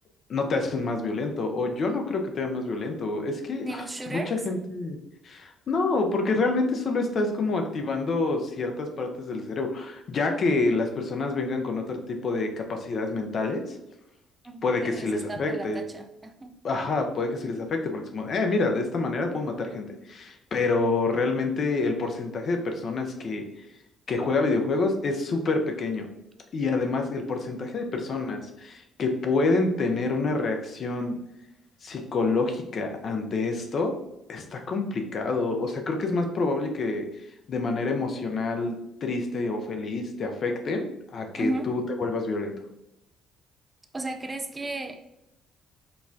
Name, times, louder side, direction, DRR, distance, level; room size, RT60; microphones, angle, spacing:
voice 1, 0.3-5.0 5.2-13.8 14.6-15.8 16.6-23.4 24.1-26.1 26.5-31.2 31.8-33.9 34.3-40.8 41.1-42.5, left 3 dB, 45° left, 4 dB, 0.5 m, -27 dB
voice 2, 3.6-4.4 14.4-16.6 41.4-41.7 43.9-45.0, right 2 dB, 20° right, 5 dB, 0.4 m, -34 dB
3.9 x 2.2 x 2.6 m, 0.87 s
figure-of-eight pair, 45°, 0 cm